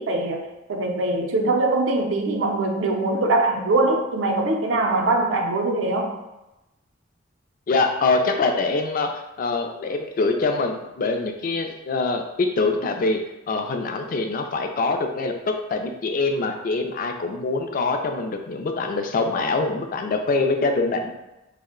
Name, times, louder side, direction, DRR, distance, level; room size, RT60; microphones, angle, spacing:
voice 1, 0.0-6.2, right 2 dB, 80° right, 2 dB, 0.5 m, -22 dB
voice 2, 7.7-13.2 13.5-21.1, left 3 dB, 45° left, 4 dB, 0.3 m, -24 dB
2.5 x 2.0 x 3.6 m, 0.96 s
head